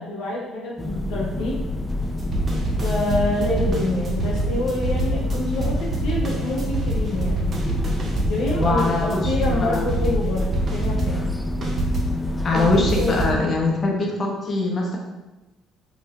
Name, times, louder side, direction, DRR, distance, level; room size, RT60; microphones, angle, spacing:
voice 1, 0.0-1.6 2.8-7.5 8.3-11.3 12.5-13.5, left 2 dB, 75° left, -4 dB, 0.6 m, -27 dB
sound 1, 0.8-13.4, left 1 dB, 10° left, 0.3 m, -27 dB
sound 2, 2.0-12.2 12.6-13.4, right 2 dB, 45° right, 0.7 m, -26 dB
voice 2, 8.6-9.2 9.7-9.8 12.4-15.0, left 2 dB, 45° left, -1 dB, 0.8 m, -22 dB
2.9 x 2.6 x 3.1 m, 1.1 s
hypercardioid pair, 55°, 0 cm